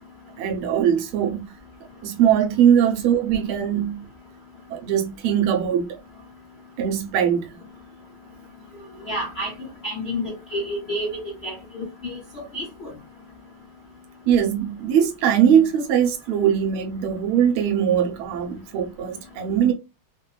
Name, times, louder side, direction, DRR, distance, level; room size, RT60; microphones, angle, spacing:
voice 1, 0.4-1.5 2.0-4.0 4.7-6.0 6.8-7.6 14.3-19.7, right 9 dB, 85° right, 1.5 m, -21 dB
voice 2, 9.1-12.9, equal, 75° left, 0.5 m, -30 dB
3.5 x 2.2 x 2.3 m
omnidirectional pair, 2.3 m